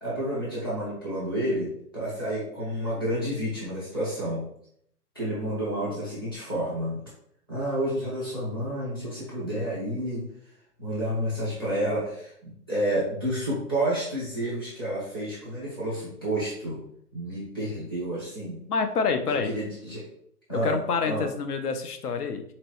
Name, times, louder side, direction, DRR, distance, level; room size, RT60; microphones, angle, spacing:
voice 1, 0.0-4.4 5.1-7.0 7.5-10.2 10.8-16.8 17.1-18.6 19.4-20.1 20.5-21.3, right 1 dB, 15° left, -9 dB, 0.6 m, -30 dB
voice 2, 18.7-19.5 20.5-22.4, left 5 dB, 70° left, 7 dB, 0.6 m, -27 dB
4.0 x 2.9 x 2.9 m, 0.69 s
hypercardioid pair, 170°, 48 cm